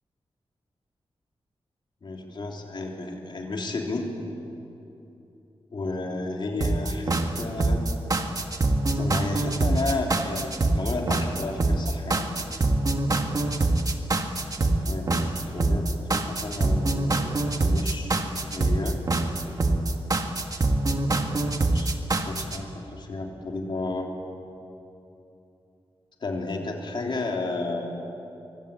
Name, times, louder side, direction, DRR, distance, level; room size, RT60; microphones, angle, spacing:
voice 1, 2.0-4.1 5.7-7.8 8.9-12.3 14.9-18.2 18.5-19.0 21.7-21.9 22.3-24.1 26.2-28.0, left 2 dB, 50° left, 1 dB, 3.6 m, -32 dB
sound 1, 6.6-22.6, right 2 dB, 35° right, 1.7 m, -24 dB
25.0 x 24.5 x 8.6 m, 2.9 s
wide cardioid pair, 170°, 10 cm